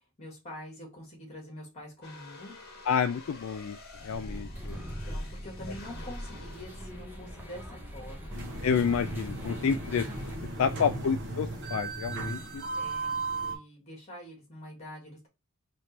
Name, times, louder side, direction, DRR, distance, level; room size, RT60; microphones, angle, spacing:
voice 1, 0.0-2.5 4.0-4.4 4.8-8.3 10.4-11.2 12.3-13.2 13.4-15.3, left 1 dB, 30° left, 2.1 m, -46 dB
sound 1, 2.0-10.9, left 2 dB, 45° left, 1.4 m, -51 dB
voice 2, 2.9-3.8 4.0-4.8 8.6-10.1 10.6-12.6, left 6 dB, 65° left, 0.3 m, -29 dB
sound 2, 4.1-10.4, equal, 10° right, 0.9 m, -41 dB
sound 3, 8.3-13.5, right 3 dB, 55° right, 1.1 m, -36 dB
4.2 x 3.0 x 3.2 m
head